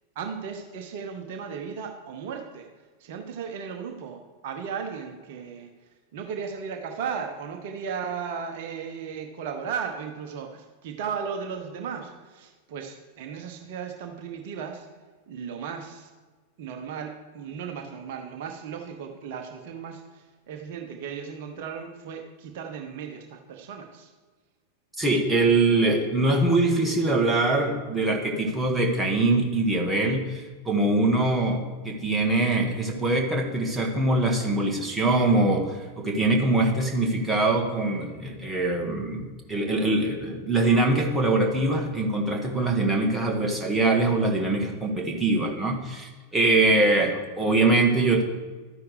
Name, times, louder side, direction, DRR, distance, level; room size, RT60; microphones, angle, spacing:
voice 1, 0.1-2.7 3.0-5.7 6.1-14.9 15.3-16.1 16.6-24.1, right 6 dB, 50° right, 4 dB, 0.9 m, -36 dB
voice 2, 25.0-48.2, right 2 dB, 5° right, 0 dB, 1.7 m, -23 dB
12.5 x 9.6 x 3.3 m, 1.4 s
figure-of-eight pair, 90°, 0 cm